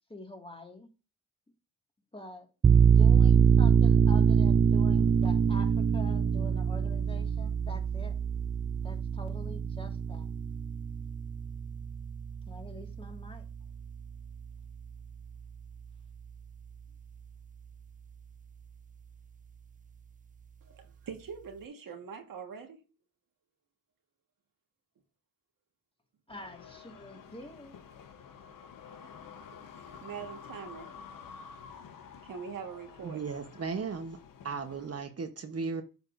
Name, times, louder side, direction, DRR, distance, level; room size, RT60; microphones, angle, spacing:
voice 1, 0.1-0.9 2.1-2.5 2.8-8.1 8.8-10.3 12.5-13.4 26.3-27.7, left 1 dB, 15° left, 1.9 m, -46 dB
sound 1, 2.6-13.9, right 6 dB, 25° right, 0.3 m, -25 dB
voice 2, 20.6-22.8 27.1-27.2 29.7-30.9 31.3-31.4 32.2-33.2, right 6 dB, 85° right, 1.6 m, -43 dB
sound 2, 26.3-35.0, left 6 dB, 90° left, 1.0 m, -50 dB
voice 3, 33.0-34.2 34.4-35.8, right 5 dB, 50° right, 1.0 m, -36 dB
8.0 x 6.7 x 2.6 m
cardioid pair, 60°, 32 cm